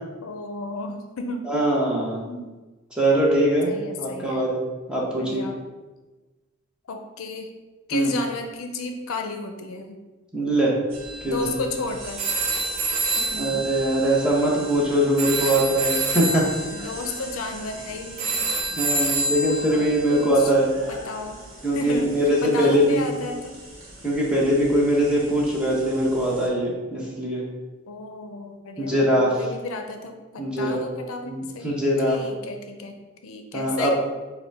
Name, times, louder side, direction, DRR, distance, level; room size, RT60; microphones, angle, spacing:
voice 1, 0.2-1.5 2.2-2.5 3.6-4.4 5.2-5.6 6.8-7.5 7.9-10.0 11.3-12.3 13.2-13.6 16.7-18.5 19.7-19.8 20.1-20.5 20.9-21.4 21.7-22.1 22.4-23.6 27.9-31.7 32.1-33.9, left 3 dB, 70° left, 5 dB, 0.5 m, -33 dB
voice 2, 1.5-2.2 3.0-3.7 4.0-4.6 4.9-5.4 7.9-8.1 10.3-10.8 11.2-11.6 13.4-16.4 18.8-20.7 21.6-23.1 24.0-27.5 28.8-29.3 30.4-30.8 31.2-32.2 33.5-33.9, right 1 dB, 5° right, -5 dB, 0.8 m, -22 dB
sound 1, 10.9-20.5, right 3 dB, 35° right, 0.4 m, -28 dB
sound 2, 10.9-26.5, right 1 dB, 65° right, 1.1 m, -42 dB
5.0 x 2.2 x 4.6 m, 1.2 s
head